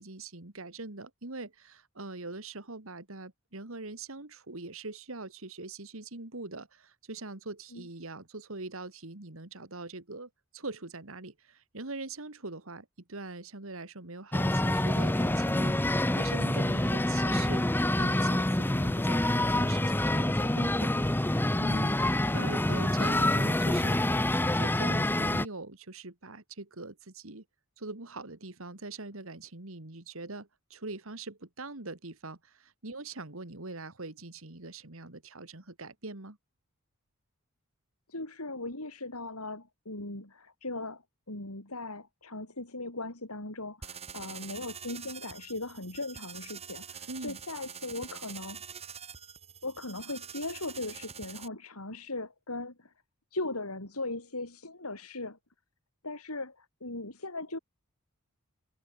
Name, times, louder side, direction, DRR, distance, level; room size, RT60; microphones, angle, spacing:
voice 1, 0.0-17.6 18.0-24.0 24.4-27.4 27.8-36.4 47.1-47.4, right 3 dB, 65° right, 2.2 m, -42 dB
sound 1, 14.3-25.5, left 1 dB, 10° left, 0.7 m, -27 dB
voice 2, 38.1-41.0 41.3-48.6 49.6-52.9 53.3-55.4 56.0-57.6, left 2 dB, 90° left, 6.0 m, -38 dB
sound 2, 43.8-51.5, right 7 dB, 30° right, 2.0 m, -45 dB
head